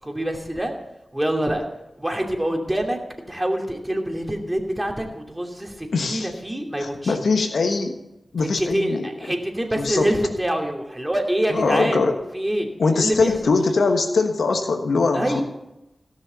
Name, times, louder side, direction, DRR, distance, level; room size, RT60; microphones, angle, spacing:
voice 1, 0.0-0.7 1.1-1.7 2.0-3.0 3.3-7.2 8.4-12.0 12.3-13.5 15.1-15.4, right 1 dB, 15° right, 2 dB, 2.7 m, -25 dB
voice 2, 5.9-6.3 6.8-8.0 8.3-9.1 9.8-10.1 11.5-12.1 12.8-15.4, left 4 dB, 80° left, 6 dB, 1.3 m, -21 dB
16.5 x 6.6 x 6.9 m, 0.92 s
cardioid pair, 45°, 0 cm